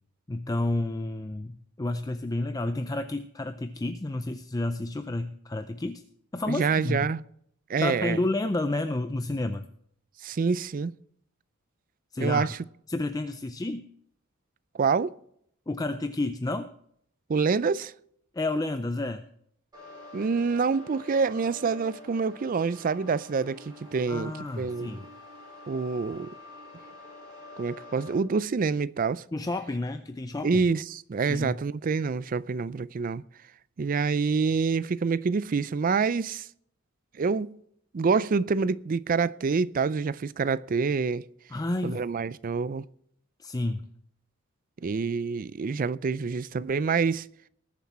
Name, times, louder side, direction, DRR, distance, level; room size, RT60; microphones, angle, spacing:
voice 1, 0.3-6.0 6.3-7.1 7.8-9.7 12.1-12.5 12.9-13.9 15.7-16.7 18.3-19.2 24.1-25.0 29.3-30.7 31.2-31.6 41.5-42.1 43.4-43.9, left 2 dB, 15° left, 0.4 m, -30 dB
voice 2, 6.5-7.2 7.7-8.2 10.2-10.9 12.2-12.6 14.8-15.1 17.3-17.9 20.1-24.9 25.7-26.3 27.6-29.2 30.4-33.2 33.8-36.5 37.2-37.6 37.9-41.2 41.8-42.9 44.8-47.3, right 5 dB, 40° right, 0.4 m, -27 dB
sound 1, 19.7-28.1, left 2 dB, 20° right, 5.9 m, -47 dB
19.5 x 7.3 x 4.3 m
head